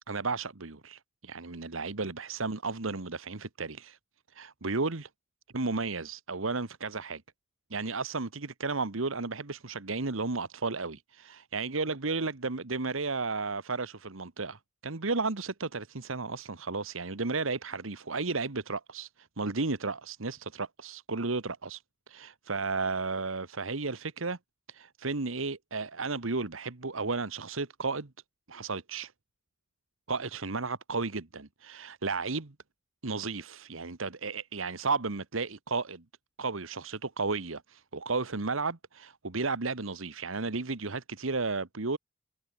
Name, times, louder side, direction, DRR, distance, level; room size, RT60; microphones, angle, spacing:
voice 1, 0.1-4.0 4.3-5.1 5.5-7.2 7.7-21.8 22.1-24.4 24.7-28.1 28.5-29.1 30.1-32.5 33.0-36.0 36.4-42.0, right 3 dB, 85° right, 1.5 m, -33 dB
head